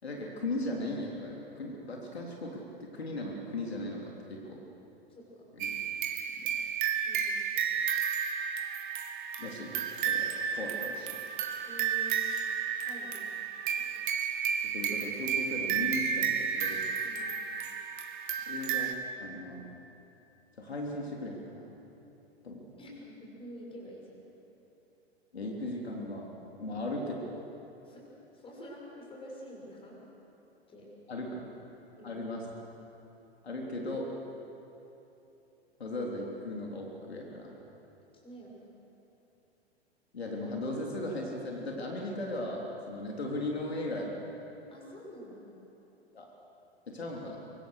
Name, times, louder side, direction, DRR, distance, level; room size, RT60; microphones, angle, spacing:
voice 1, 0.0-4.6 5.6-5.8 6.4-6.5 9.4-11.1 14.6-16.8 18.5-19.7 20.6-21.7 22.4-22.6 25.3-26.3 26.6-27.2 31.1-31.5 32.0-32.4 33.4-34.1 35.8-37.5 40.1-44.2 46.1-46.3 46.9-47.4, left 1 dB, 70° left, -1 dB, 3.5 m, -37 dB
voice 2, 5.1-5.5 7.0-7.5 11.7-12.3 12.8-13.3 13.8-14.0 17.0-17.4 22.8-24.2 26.7-27.4 27.8-28.0 28.3-30.0 30.7-30.9 32.0-32.2 38.1-38.6 44.7-45.5, equal, 15° left, -2 dB, 6.7 m, -48 dB
sound 1, 5.6-18.9, right 7 dB, 50° right, 1.8 m, -32 dB
25.0 x 24.5 x 6.6 m, 3.0 s
figure-of-eight pair, 105°, 33 cm